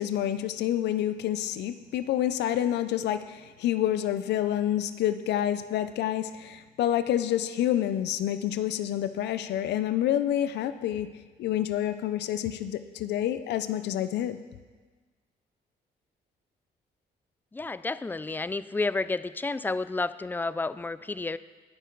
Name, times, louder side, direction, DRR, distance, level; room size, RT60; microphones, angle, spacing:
voice 1, 0.0-11.1 11.4-14.4, left 11 dB, 85° left, 11 dB, 0.5 m, -28 dB
voice 2, 17.5-21.4, left 3 dB, 10° left, 15 dB, 0.3 m, -31 dB
19.0 x 6.5 x 3.9 m, 1.4 s
cardioid pair, 90°, 17 cm